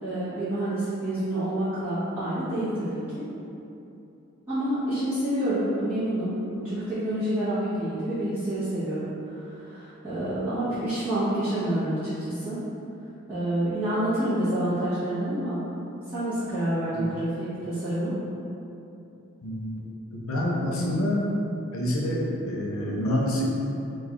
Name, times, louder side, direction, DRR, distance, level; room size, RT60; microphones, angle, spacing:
voice 1, 0.0-3.2 4.5-12.0 12.3-12.6 13.3-15.6 16.1-18.1, right 1 dB, 10° right, -18 dB, 1.1 m, -28 dB
voice 2, 19.4-21.2 21.7-23.4, left 1 dB, 75° left, -3 dB, 0.6 m, -27 dB
3.8 x 2.5 x 3.0 m, 2.8 s
head